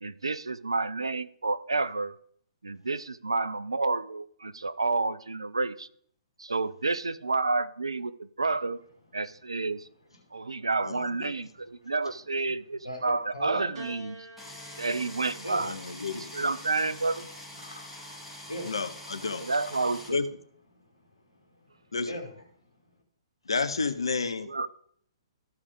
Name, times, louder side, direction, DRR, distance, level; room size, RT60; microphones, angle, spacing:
voice 1, 0.0-2.1 2.6-5.9 6.4-8.8 9.1-9.9 10.3-14.2 14.8-15.8 16.1-17.3 19.4-20.2 24.4-24.7, right 3 dB, 80° right, 16 dB, 0.5 m, -30 dB
voice 2, 10.2-10.7 11.8-11.9 12.8-13.7 14.6-14.8 15.4-15.7 17.0-17.2 17.5-18.8 19.6-19.9 20.7-21.0 21.3-22.5, equal, 90° left, 2 dB, 1.9 m, -41 dB
Piano, 13.7-18.2 19.3-20.0, right 1 dB, 55° right, 2.8 m, -50 dB
sound 1, 14.4-20.1, left 1 dB, 5° right, 3.1 m, -44 dB
voice 3, 15.6-16.3 18.6-19.5 20.1-20.2 21.9-22.1 23.5-24.5, left 4 dB, 75° left, 12 dB, 0.8 m, -30 dB
14.0 x 4.9 x 3.6 m, 0.62 s
figure-of-eight pair, 120°, 3 cm